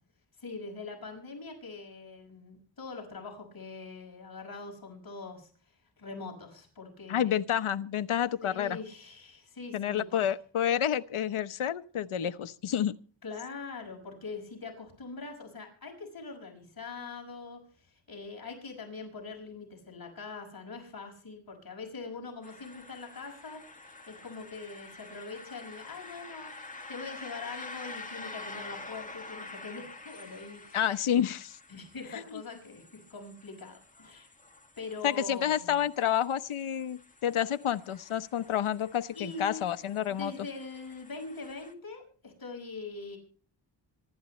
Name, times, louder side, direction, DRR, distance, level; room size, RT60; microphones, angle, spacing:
voice 1, 0.4-7.4 8.4-10.2 13.2-30.9 31.7-34.3 34.8-35.8 39.1-39.7 40.1-43.2, left 4 dB, 45° left, 5.7 m, -43 dB
voice 2, 7.1-8.8 9.7-12.9 30.7-31.6 32.1-32.2 35.0-40.3, left 10 dB, 90° left, 1.0 m, -29 dB
sound 1, 22.4-41.7, left 3 dB, 15° left, 1.9 m, -48 dB
26.0 x 12.5 x 3.2 m
wide cardioid pair, 150°, 48 cm